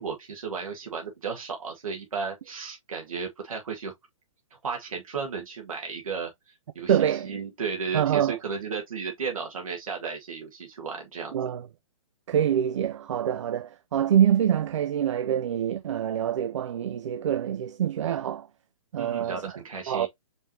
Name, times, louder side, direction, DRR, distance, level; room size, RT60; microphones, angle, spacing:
voice 1, 0.0-3.9 4.6-6.3 6.8-11.4 19.0-20.1, right 5 dB, 90° right, 1.9 m, -34 dB
voice 2, 6.9-7.3 7.9-8.4 11.3-11.7 12.3-18.5 18.9-19.4 19.9-20.1, right 9 dB, 60° right, 0.4 m, -25 dB
5.3 x 3.2 x 2.8 m
hypercardioid pair, 160°, 17 cm